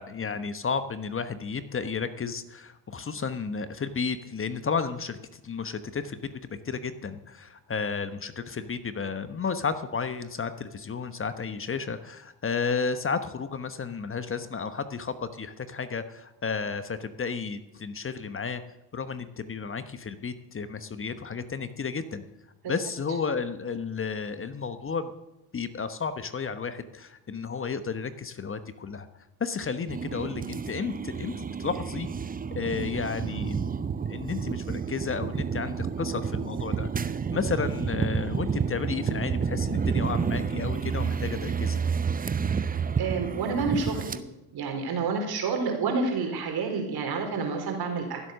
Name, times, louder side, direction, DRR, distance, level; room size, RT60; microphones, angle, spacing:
voice 1, 0.0-6.2 6.5-18.6 18.9-22.2 22.7-25.1 25.5-29.1 29.4-32.1 32.5-33.7 34.1-41.8, left 5 dB, 25° left, 11 dB, 1.1 m, -32 dB
sound 1, 29.9-44.2, right 6 dB, 20° right, 0.7 m, -30 dB
voice 2, 42.5-44.2 44.5-48.2, right 4 dB, 50° right, 3 dB, 3.9 m, -29 dB
15.5 x 7.9 x 6.6 m, 0.94 s
hypercardioid pair, 65°, 46 cm